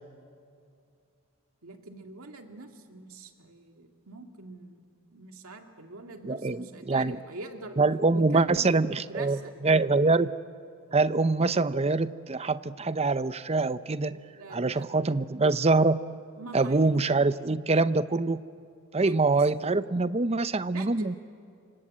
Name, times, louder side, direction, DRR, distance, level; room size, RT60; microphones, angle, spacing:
voice 1, 1.6-4.8 5.1-7.8 8.1-9.5 14.1-15.1 16.4-16.9 18.9-19.1 20.7-21.2, right 2 dB, 80° right, 4 dB, 2.2 m, -45 dB
voice 2, 6.2-7.2 7.8-10.3 10.9-14.2 14.5-16.0 16.5-18.4 18.9-21.1, right 3 dB, 30° right, 14 dB, 0.7 m, -24 dB
28.0 x 25.0 x 8.6 m, 2.4 s
head